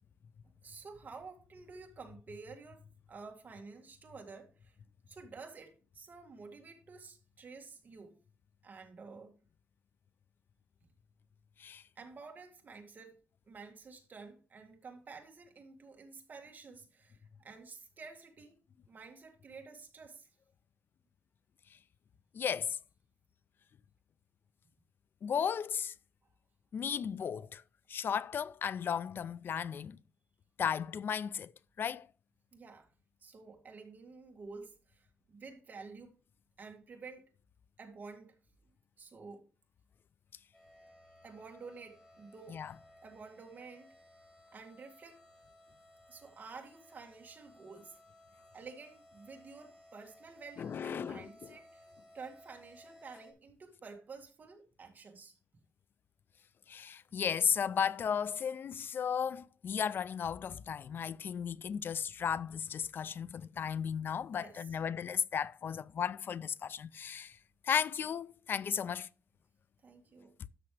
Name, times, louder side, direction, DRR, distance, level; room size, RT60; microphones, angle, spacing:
voice 1, 0.6-4.8 5.1-8.1 8.6-9.3 12.0-13.2 13.5-18.6 18.9-20.3 32.5-32.9 33.2-36.1 36.6-37.3 37.8-38.3 39.0-39.4 41.2-42.7 43.0-43.9 44.5-45.2 46.1-48.0 48.5-51.8 52.1-55.3 64.3-64.8 69.8-70.3, right 4 dB, 40° right, 2.1 m, -51 dB
voice 2, 22.3-22.8 25.2-25.9 26.7-27.6 27.9-30.0 30.6-31.5 31.8-32.1 42.5-42.7 50.6-51.3 56.7-67.4 67.6-69.1, left 7 dB, 55° left, 0.3 m, -35 dB
sound 1, 40.5-53.3, left 1 dB, 5° left, 2.8 m, -60 dB
12.5 x 6.4 x 3.2 m
wide cardioid pair, 140°, 4 cm